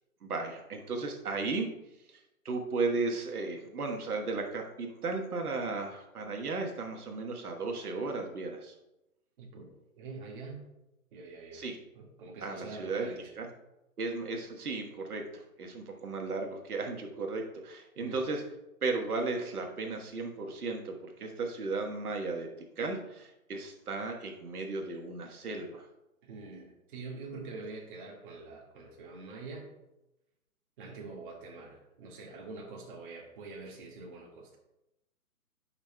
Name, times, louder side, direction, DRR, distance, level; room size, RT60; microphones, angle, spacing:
voice 1, 0.2-1.7 2.1-2.2 2.4-8.7 11.5-11.8 12.4-13.1 13.4-13.5 14.0-18.4 18.8-22.5 22.8-25.9, right 3 dB, 90° right, 2 dB, 1.4 m, -35 dB
voice 2, 9.4-9.7 9.9-10.7 11.1-11.6 11.9-13.3 18.0-18.2 26.2-29.7 30.8-34.6, right 3 dB, 35° right, -1 dB, 1.8 m, -45 dB
13.5 x 5.8 x 2.3 m, 0.93 s
hypercardioid pair, 150°, 44 cm